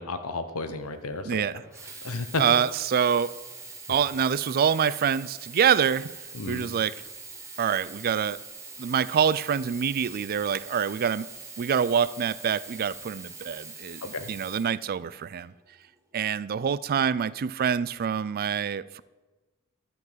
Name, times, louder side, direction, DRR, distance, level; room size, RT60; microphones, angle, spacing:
voice 1, 0.0-1.6 2.0-2.4 6.3-6.7 14.1-14.3, left 3 dB, 70° left, 9 dB, 1.1 m, -32 dB
voice 2, 1.3-1.6 2.4-3.4 3.9-6.1 6.5-6.9 7.6-8.4 8.8-11.3 11.6-15.5 16.1-19.0, right 7 dB, 40° right, 18 dB, 0.3 m, -26 dB
Sink (filling or washing), 1.6-15.4 16.1-16.2, right 4 dB, 15° right, 1.6 m, -43 dB
12.0 x 6.1 x 7.4 m, 1.2 s
head